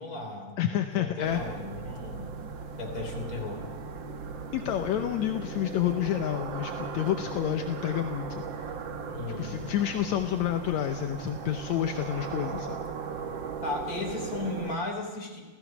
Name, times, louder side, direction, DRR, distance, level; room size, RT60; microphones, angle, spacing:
voice 1, 0.0-2.3 2.8-3.6 9.1-9.6 13.6-15.4, left 3 dB, 25° left, 2 dB, 3.9 m, -36 dB
voice 2, 0.6-1.4 4.5-8.4 9.4-12.8, left 11 dB, 70° left, 6 dB, 1.8 m, -29 dB
sound 1, 1.2-14.8, right 5 dB, 80° right, 1.0 m, -37 dB
29.5 x 15.5 x 6.1 m, 1.3 s
omnidirectional pair, 4.0 m